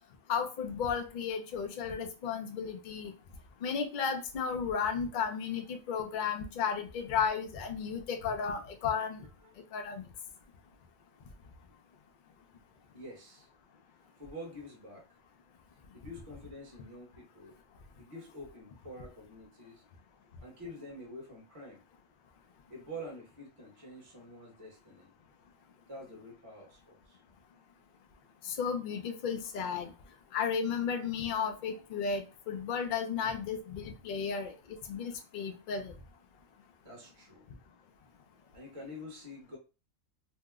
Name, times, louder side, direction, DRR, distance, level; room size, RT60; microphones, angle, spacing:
voice 1, 0.3-3.1 3.6-9.2 9.7-10.1 28.4-29.9 30.3-35.9, left 6 dB, 65° left, 5 dB, 0.5 m, -34 dB
voice 2, 12.9-13.5 14.2-15.1 15.9-17.6 18.0-19.8 20.4-21.8 22.7-25.1 25.9-27.2 36.8-37.5 38.5-39.6, equal, 25° right, -2 dB, 0.9 m, -47 dB
2.8 x 2.0 x 3.5 m, 0.32 s
omnidirectional pair, 1.5 m